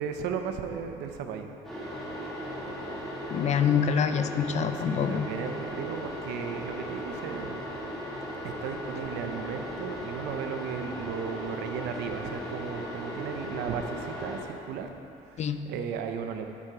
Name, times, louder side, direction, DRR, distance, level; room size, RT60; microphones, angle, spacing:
voice 1, 0.0-1.5 4.7-7.6 8.4-14.9 15.2-16.5, right 7 dB, 85° right, 6 dB, 0.7 m, -35 dB
sound 1, 1.6-14.4, equal, ahead, 2.2 m, -37 dB
voice 2, 3.3-5.3 15.4-15.6, left 7 dB, 40° left, 10 dB, 0.5 m, -26 dB
9.5 x 5.9 x 4.9 m, 2.7 s
cardioid pair, 110°, 17 cm